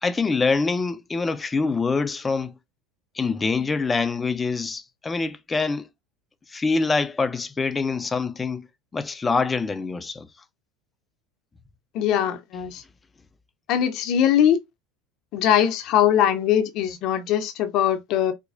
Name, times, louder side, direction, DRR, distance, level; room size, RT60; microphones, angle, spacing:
voice 1, 0.0-2.5 3.1-5.9 6.5-8.7 8.9-10.3, left 4 dB, 20° left, 0.5 m, -25 dB
voice 2, 11.9-12.8 13.7-14.6 15.3-18.3, left 10 dB, 55° left, 0.7 m, -21 dB
4.1 x 2.2 x 2.5 m
hypercardioid pair, 90°, 0 cm